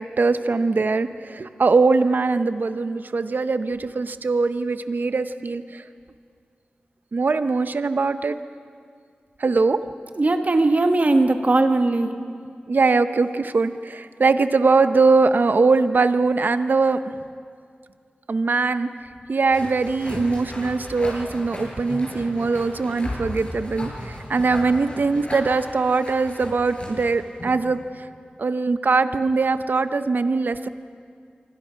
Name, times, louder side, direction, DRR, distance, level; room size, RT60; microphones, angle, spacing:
voice 1, 0.0-5.8 7.1-8.4 9.4-9.9 12.7-17.0 18.3-18.9 19.3-28.1 28.4-30.7, right 4 dB, 65° right, 11 dB, 0.8 m, -21 dB
voice 2, 10.1-12.1, right 2 dB, 50° right, 6 dB, 1.6 m, -19 dB
sound 1, 19.5-27.7, left 1 dB, 40° left, 7.1 m, -36 dB
26.0 x 24.0 x 5.8 m, 2.2 s
wide cardioid pair, 80°, 3 cm